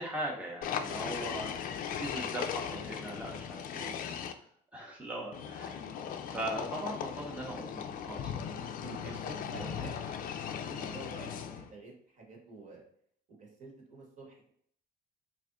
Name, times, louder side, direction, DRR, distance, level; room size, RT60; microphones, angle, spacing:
voice 1, 0.0-1.5 2.0-3.9 4.7-5.8 6.2-8.7 9.4-9.7, right 1 dB, 5° right, -3 dB, 0.7 m, -40 dB
sound 1, 0.6-4.3 5.3-11.7, left 8 dB, 55° left, 0.4 m, -38 dB
voice 2, 1.1-1.5 8.5-10.1 10.6-12.8 13.4-14.5, right 3 dB, 45° right, -1 dB, 1.3 m, -49 dB
3.3 x 2.6 x 3.7 m, 0.64 s
cardioid pair, 110°, 17 cm